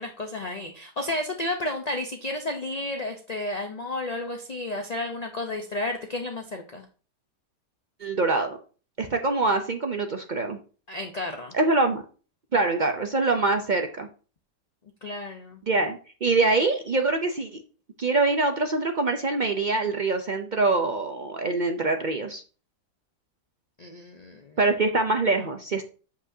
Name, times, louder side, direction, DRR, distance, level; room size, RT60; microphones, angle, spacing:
voice 1, 0.0-6.9 10.9-11.6 15.0-15.6 23.8-24.6, left 2 dB, 40° left, 4 dB, 0.6 m, -32 dB
voice 2, 8.0-8.6 9.0-10.6 11.5-12.0 12.5-14.1 15.7-17.6 18.0-22.4 24.6-25.8, right 3 dB, 85° right, 4 dB, 0.4 m, -24 dB
8.1 x 8.0 x 2.7 m, 0.37 s
omnidirectional pair, 1.8 m